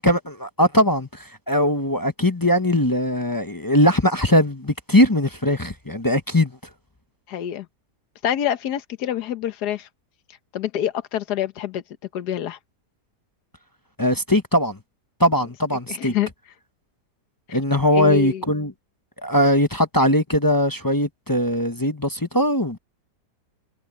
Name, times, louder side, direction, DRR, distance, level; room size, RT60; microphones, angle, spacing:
voice 1, 0.0-6.6 14.0-14.8 15.2-16.1 17.5-18.7 19.2-22.8, left 1 dB, 20° left, 0.7 m, -20 dB
voice 2, 7.3-7.7 8.2-9.9 10.3-11.8 12.1-12.6 15.9-16.3 17.5-17.6 17.9-18.4, left 10 dB, 75° left, 1.6 m, -26 dB
omnidirectional pair, 1.8 m